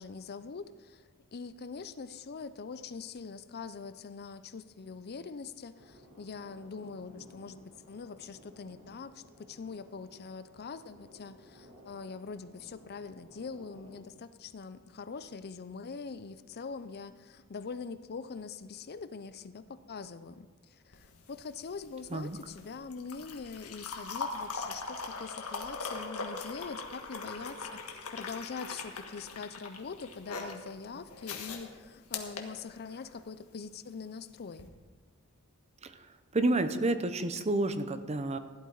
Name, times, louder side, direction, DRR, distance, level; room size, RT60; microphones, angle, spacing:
voice 1, 0.0-34.7, left 5 dB, 45° left, 13 dB, 0.5 m, -43 dB
sound 1, 5.8-14.0, equal, 75° right, 3.9 m, -57 dB
sound 2, 20.9-33.2 34.5-34.7, left 4 dB, 85° left, 1.6 m, -41 dB
voice 2, 36.3-38.4, right 2 dB, 30° right, 10 dB, 0.7 m, -29 dB
16.0 x 11.0 x 4.0 m, 1.5 s
head